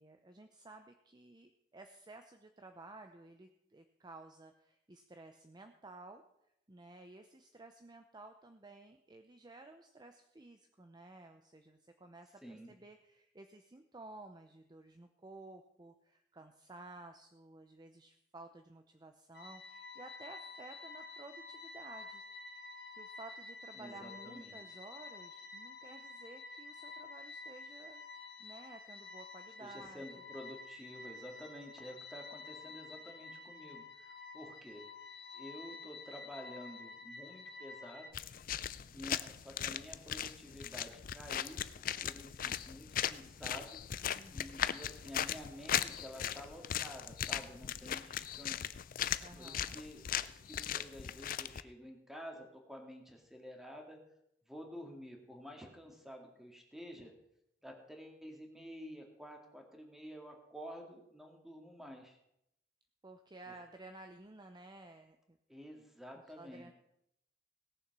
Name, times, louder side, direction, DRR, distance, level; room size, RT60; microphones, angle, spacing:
voice 1, 0.0-6.2 6.7-22.2 22.5-28.1 28.4-30.0 44.1-44.8 49.2-49.8 63.0-65.4 66.1-66.7, right 2 dB, 25° right, 6 dB, 0.7 m, -54 dB
voice 2, 12.4-12.7 23.8-24.6 29.6-34.8 35.3-38.1 38.9-43.8 44.3-48.7 49.4-54.0 54.5-57.1 57.6-62.2 65.5-66.7, equal, ahead, 2 dB, 2.1 m, -50 dB
sound 1, 19.3-38.1, left 3 dB, 65° left, 1.3 m, -50 dB
sound 2, 38.1-51.6, left 10 dB, 50° left, 0.4 m, -38 dB
17.5 x 7.1 x 6.0 m, 0.80 s
head